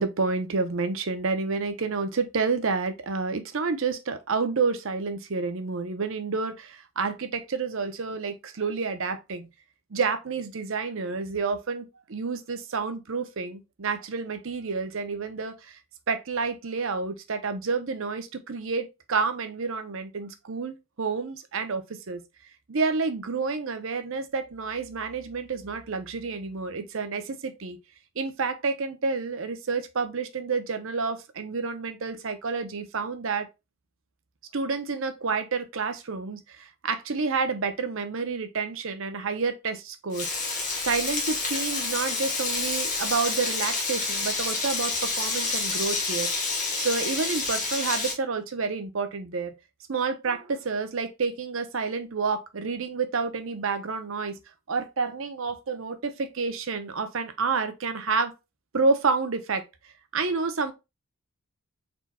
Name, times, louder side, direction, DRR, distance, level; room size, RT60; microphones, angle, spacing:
voice 1, 0.0-9.5 9.9-15.8 16.1-22.2 22.7-27.8 28.2-33.5 34.5-40.3 40.8-46.3 46.7-49.5 49.9-54.4 54.7-58.3 58.7-59.6 60.1-60.7, right 4 dB, 60° right, 0.7 m, -29 dB
Frying (food), 40.1-48.1, left 3 dB, 35° left, 1.4 m, -28 dB
4.3 x 4.2 x 2.3 m
head